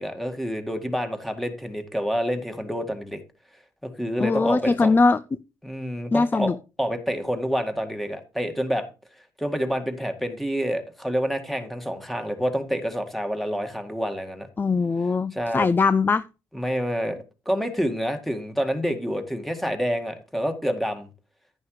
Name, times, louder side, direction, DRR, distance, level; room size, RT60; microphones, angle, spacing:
voice 1, 0.0-3.2 4.0-5.0 5.6-6.5 6.8-8.8 9.4-14.5 15.3-15.7 16.5-17.2 17.5-21.1, equal, ahead, 6 dB, 1.9 m, -27 dB
voice 2, 4.2-5.2 6.1-6.5 14.6-16.2, left 4 dB, 20° left, 15 dB, 0.4 m, -21 dB
10.5 x 9.8 x 3.2 m, 0.31 s
hypercardioid pair, 55°, 9 cm